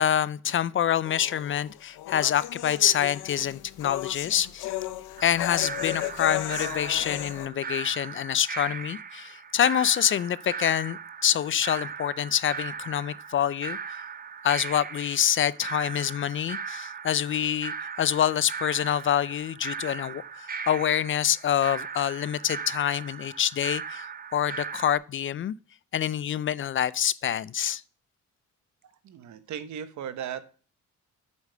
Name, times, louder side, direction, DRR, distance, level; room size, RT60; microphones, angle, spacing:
voice 1, 0.0-4.7 5.2-13.8 14.4-25.5 25.9-27.8, left 10 dB, 45° left, 0.4 m, -26 dB
sound 1, 1.1-7.5, left 14 dB, 85° left, 0.8 m, -35 dB
sound 2, 5.2-25.0, right 6 dB, 30° right, 0.6 m, -38 dB
voice 2, 28.8-30.4, right 9 dB, 70° right, 1.0 m, -37 dB
8.4 x 4.8 x 6.6 m
cardioid pair, 90°, 30 cm